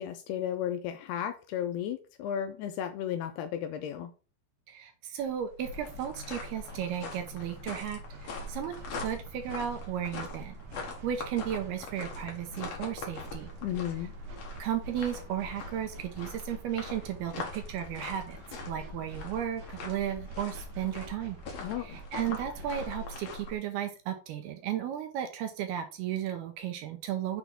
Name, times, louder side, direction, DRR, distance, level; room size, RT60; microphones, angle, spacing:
voice 1, 0.0-4.1 13.6-14.1 21.6-22.0, left 10 dB, 85° left, 7 dB, 2.4 m, -34 dB
voice 2, 4.7-10.5 11.0-13.5 14.6-18.4 18.7-21.4 21.8-27.4, right 10 dB, 75° right, 6 dB, 2.5 m, -34 dB
sound 1, 5.2-23.5, left 3 dB, 60° left, 1.7 m, -42 dB
sound 2, 5.6-23.2, right 1 dB, 60° right, 2.2 m, -48 dB
6.9 x 4.3 x 4.4 m, 0.35 s
omnidirectional pair, 5.0 m